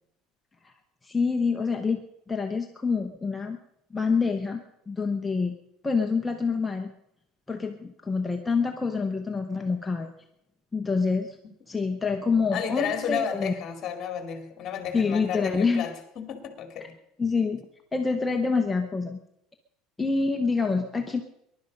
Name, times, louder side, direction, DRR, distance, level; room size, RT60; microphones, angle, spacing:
voice 1, 1.0-2.0 2.3-3.6 3.9-5.5 5.8-6.9 7.5-10.1 10.7-11.4 11.7-13.5 14.9-15.8 16.8-16.9 17.2-17.6 17.9-19.2 20.0-21.2, left 4 dB, 10° left, 3 dB, 0.7 m, -26 dB
voice 2, 12.5-16.9, left 8 dB, 30° left, 7 dB, 2.2 m, -32 dB
21.0 x 11.5 x 5.2 m, 0.82 s
cardioid pair, 175°, 0 cm